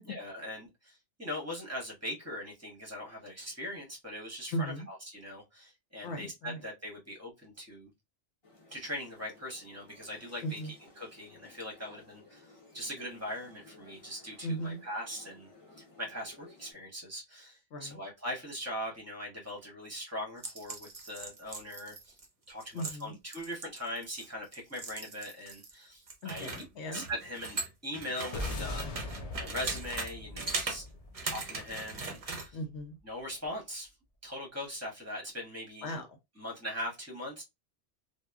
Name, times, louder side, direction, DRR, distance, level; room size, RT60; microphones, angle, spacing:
voice 1, 0.1-7.9 8.7-12.5 12.7-15.5 16.0-22.1 22.5-26.5 26.9-30.8 31.2-32.6 33.0-33.9 34.2-36.0 36.4-37.4, left 1 dB, 15° right, 1.0 m, -41 dB
voice 2, 4.5-4.9 6.0-6.6 10.4-10.7 14.4-14.8 17.7-18.0 22.7-23.2 26.2-27.0 32.5-33.0 35.8-36.1, equal, 70° left, 0.9 m, -37 dB
sound 1, 8.4-16.7, left 3 dB, 30° left, 0.8 m, -58 dB
sound 2, 20.4-25.7 26.1-30.1 30.4-30.8 31.1-32.5, right 3 dB, 40° right, 0.6 m, -39 dB
sound 3, 28.3-32.8, left 2 dB, 50° left, 0.4 m, -41 dB
2.9 x 2.2 x 2.3 m
omnidirectional pair, 1.2 m